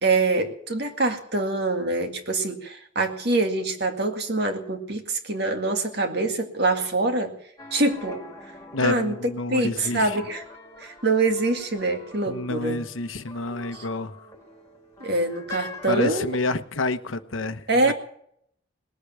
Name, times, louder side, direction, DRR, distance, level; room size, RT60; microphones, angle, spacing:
voice 1, 0.0-7.3 7.7-8.3 8.8-10.4 10.8-12.8 13.7-13.9 15.0-16.4 17.7-17.9, right 2 dB, 55° right, 5 dB, 2.0 m, -25 dB
sound 1, 7.6-16.2, left 2 dB, 15° left, 2.1 m, -44 dB
voice 2, 8.7-10.1 12.3-14.1 15.9-17.9, left 2 dB, 90° left, 10 dB, 1.1 m, -28 dB
20.0 x 8.2 x 8.7 m, 0.68 s
head